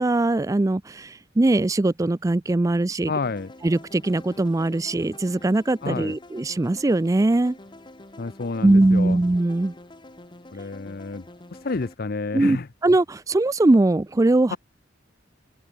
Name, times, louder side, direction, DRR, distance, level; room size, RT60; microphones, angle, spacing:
voice 1, 0.0-3.1 3.6-7.6 8.6-9.7 12.3-12.6 12.8-14.6, right 2 dB, 15° right, 0.4 m, -21 dB
voice 2, 3.1-3.5 5.8-6.2 8.2-9.2 10.5-11.3 11.5-12.7 14.5-14.6, left 3 dB, 50° left, 0.7 m, -29 dB
sound 1, 3.2-11.9, left 1 dB, 25° left, 1.4 m, -46 dB
head